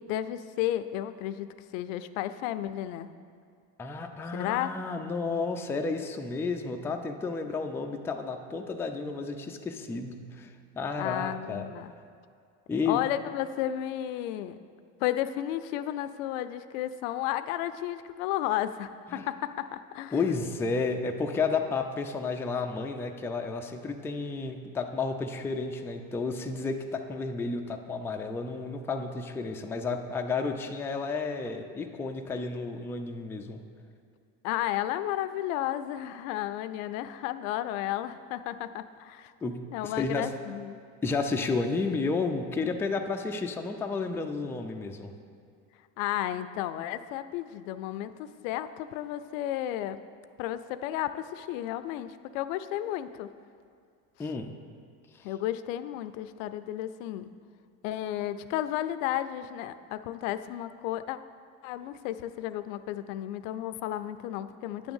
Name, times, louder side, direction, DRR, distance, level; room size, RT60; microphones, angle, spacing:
voice 1, 0.0-1.5 1.7-3.1 4.3-4.7 11.0-11.9 12.9-14.6 15.0-20.2 34.4-39.3 39.7-40.8 46.0-50.0 50.4-53.3 55.2-57.3 57.8-61.2 61.6-64.9, left 12 dB, 80° left, 12 dB, 0.5 m, -33 dB
voice 2, 3.8-10.5 10.8-11.6 12.7-13.0 19.1-19.2 20.1-33.6 39.4-39.6 39.8-40.3 41.0-45.1 54.2-54.5, left 4 dB, 5° left, 3 dB, 0.3 m, -32 dB
9.4 x 3.5 x 7.0 m, 2.2 s
supercardioid pair, 105°, 39 cm